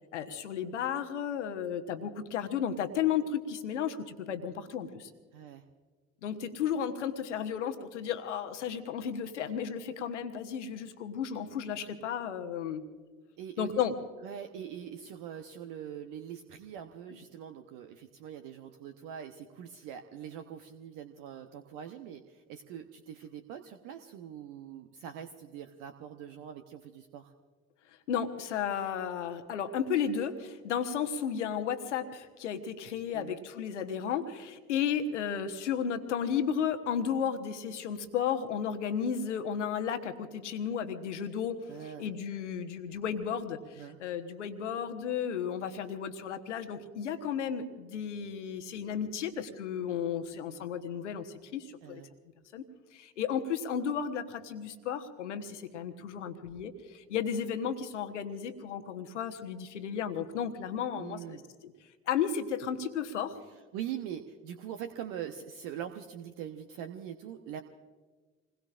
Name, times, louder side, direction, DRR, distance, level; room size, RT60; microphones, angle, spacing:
voice 1, 0.1-5.1 6.2-12.8 13.6-13.9 28.1-41.6 42.0-52.0 52.5-52.7 52.9-61.7 62.1-63.4, left 8 dB, 80° left, 7 dB, 1.2 m, -33 dB
voice 2, 5.3-5.6 13.4-13.8 14.2-27.3 33.1-33.4 41.7-42.1 43.8-44.0 51.8-52.1 61.0-61.4 63.5-67.6, right 9 dB, 65° right, 7 dB, 1.0 m, -43 dB
28.0 x 21.0 x 2.5 m, 1.4 s
figure-of-eight pair, 50°, 35 cm